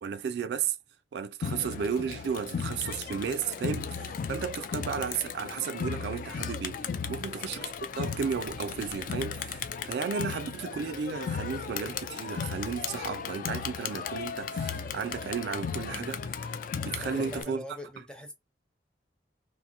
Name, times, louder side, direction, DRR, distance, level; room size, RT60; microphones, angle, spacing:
voice 1, 0.0-0.8 1.1-6.8 7.1-17.6, right 6 dB, 65° right, 0.3 m, -34 dB
Crowd, 1.4-17.4, left 6 dB, 50° left, 0.3 m, -36 dB
voice 2, 17.0-18.3, left 1 dB, 5° left, 0.6 m, -43 dB
2.8 x 2.5 x 2.6 m
head